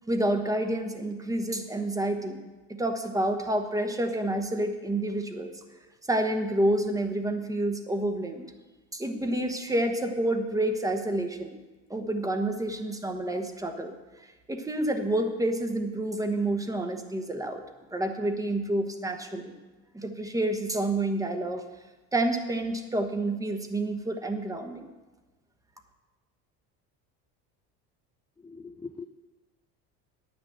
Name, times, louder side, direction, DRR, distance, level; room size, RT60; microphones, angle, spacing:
voice 1, 0.1-2.4 2.7-5.5 6.1-8.4 8.9-11.6 11.9-13.9 14.5-17.6 17.9-19.5 19.9-21.6 22.1-24.9, right 1 dB, 10° right, 6 dB, 1.1 m, -29 dB
voice 2, 28.4-29.1, left 4 dB, 10° left, 6 dB, 0.4 m, -41 dB
9.5 x 6.1 x 8.7 m, 1.2 s
supercardioid pair, 105°, 33 cm